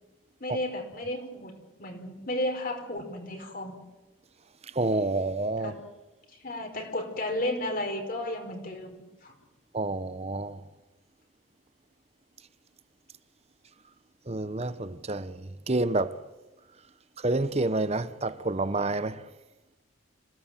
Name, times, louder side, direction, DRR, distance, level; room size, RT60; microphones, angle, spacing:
voice 1, 0.4-1.5 1.8-3.8 5.6-5.8 6.4-9.0 9.2-9.3, left 1 dB, 45° left, 4.7 m, -33 dB
voice 2, 4.7-5.7 9.7-10.6 14.3-16.2 17.2-19.2, right 2 dB, 30° right, 0.9 m, -28 dB
26.5 x 17.5 x 9.1 m
head